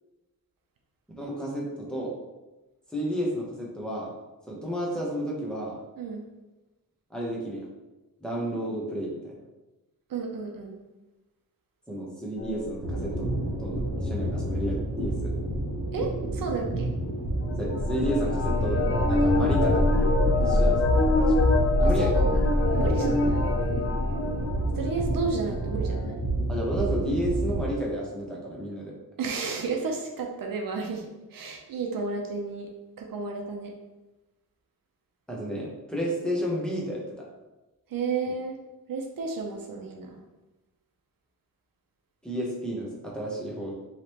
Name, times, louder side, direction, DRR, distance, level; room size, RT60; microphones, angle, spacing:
voice 1, 1.2-2.1 2.9-4.1 4.5-5.8 7.1-7.6 8.2-9.4 11.9-13.3 13.6-15.3 17.6-20.2 20.4-20.8 21.2-21.5 21.8-22.1 26.5-28.9 35.3-37.3 42.2-43.7, equal, ahead, -4 dB, 0.9 m, -31 dB
voice 2, 10.1-10.8 15.9-16.9 20.4-20.6 21.8-22.4 22.7-23.4 24.7-26.2 29.2-32.7 33.0-33.7 37.9-38.6 38.9-40.2, right 4 dB, 65° right, 2 dB, 0.7 m, -32 dB
sound 1, 12.4-14.8 17.4-25.2 25.5-26.2, left 2 dB, 40° left, 0.5 m, -25 dB
sound 2, 12.8-27.6, right 1 dB, 30° right, 1.2 m, -30 dB
5.1 x 3.1 x 2.9 m, 1.1 s
wide cardioid pair, 165°, 36 cm